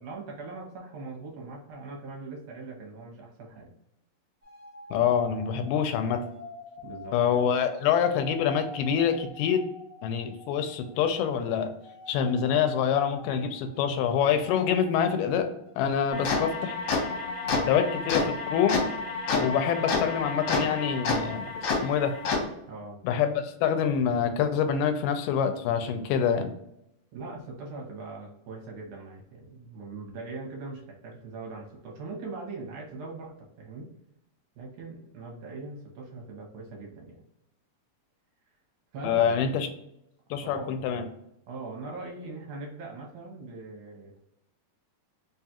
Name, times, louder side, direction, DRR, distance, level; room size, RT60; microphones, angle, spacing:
voice 1, 0.0-3.7 6.8-7.2 22.7-23.0 27.1-33.9 34.6-37.2 38.9-39.3 40.5-40.8 41.5-44.2, right 3 dB, 75° right, -1 dB, 2.3 m, -41 dB
sound 1, 4.4-11.4 11.7-18.0, left 1 dB, 50° right, 1.1 m, -48 dB
voice 2, 4.9-6.2 7.1-9.6 10.0-11.7 12.1-15.5 15.8-16.8 17.7-18.8 19.3-22.1 23.0-26.5 39.0-39.7 40.3-41.1, left 8 dB, 85° left, 7 dB, 2.1 m, -26 dB
sound 2, 16.1-22.4, left 4 dB, 70° left, 2.2 m, -29 dB
4.9 x 2.4 x 2.8 m, 0.80 s
omnidirectional pair, 3.7 m